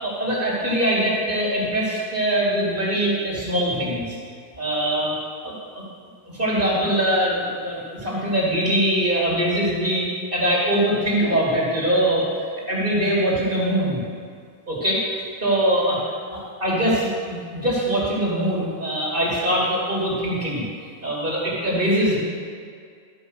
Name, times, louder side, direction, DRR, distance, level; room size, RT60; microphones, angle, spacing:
voice 1, 0.0-4.2 4.6-5.1 5.4-5.8 6.3-12.3 12.7-14.0 14.7-15.0 15.4-16.0 16.3-20.7 21.0-22.2, right 1 dB, 50° right, -6 dB, 2.7 m, -22 dB
12.5 x 5.3 x 6.4 m, 2.2 s
omnidirectional pair, 1.2 m